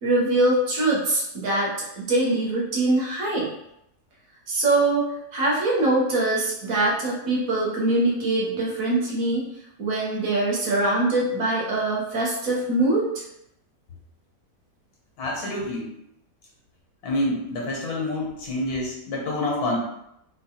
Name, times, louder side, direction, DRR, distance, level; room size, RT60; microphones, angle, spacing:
voice 1, 0.0-3.5 4.5-5.1 5.3-9.4 9.8-13.1, right 2 dB, 65° right, -4 dB, 1.3 m, -23 dB
voice 2, 15.2-15.9 17.0-19.8, left 1 dB, 85° left, -3 dB, 1.5 m, -27 dB
3.7 x 2.3 x 2.8 m, 0.80 s
omnidirectional pair, 1.6 m